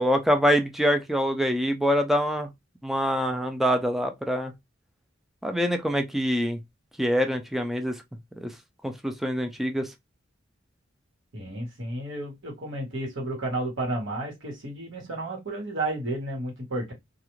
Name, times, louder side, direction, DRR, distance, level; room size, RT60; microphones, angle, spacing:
voice 1, 0.0-2.5 2.8-4.5 5.4-6.6 7.0-8.0 8.4-8.5 8.8-9.9, equal, ahead, 0.3 m, -25 dB
voice 2, 11.3-16.9, right 1 dB, 75° right, 1.3 m, -32 dB
2.4 x 2.3 x 3.0 m
head